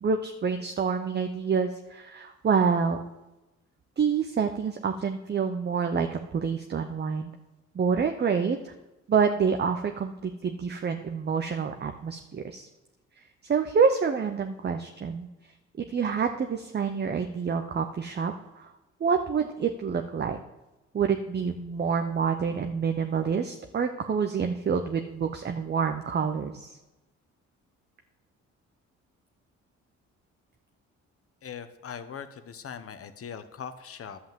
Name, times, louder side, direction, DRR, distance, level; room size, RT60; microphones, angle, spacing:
voice 1, 0.0-3.0 4.0-7.3 7.7-8.7 9.1-12.7 13.5-15.3 15.8-18.7 19.0-20.4 20.9-26.7, right 6 dB, 35° right, 6 dB, 0.7 m, -27 dB
voice 2, 31.4-34.2, left 7 dB, 50° left, 10 dB, 1.0 m, -40 dB
11.5 x 5.7 x 7.5 m, 1.0 s
cardioid pair, 90°, 30 cm